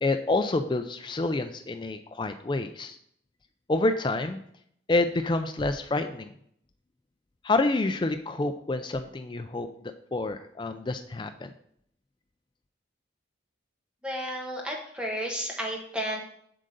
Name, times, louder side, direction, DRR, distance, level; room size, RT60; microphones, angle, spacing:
voice 1, 0.0-3.0 3.7-4.4 4.9-6.3 7.4-9.7 10.1-11.5, left 2 dB, 25° left, 7 dB, 0.4 m, -28 dB
voice 2, 14.0-16.2, equal, 5° right, 0 dB, 1.3 m, -32 dB
7.6 x 3.8 x 6.6 m, 0.68 s
head